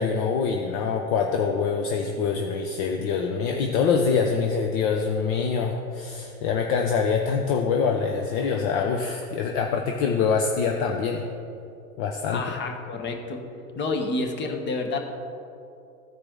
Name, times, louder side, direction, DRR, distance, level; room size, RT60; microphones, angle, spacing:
voice 1, 0.0-11.2 12.0-12.4, left 5 dB, 40° left, 3 dB, 0.7 m, -25 dB
voice 2, 12.3-13.4 13.8-15.0, left 3 dB, 25° left, 4 dB, 1.1 m, -29 dB
14.5 x 4.8 x 3.7 m, 2.6 s
figure-of-eight pair, 90°, 43 cm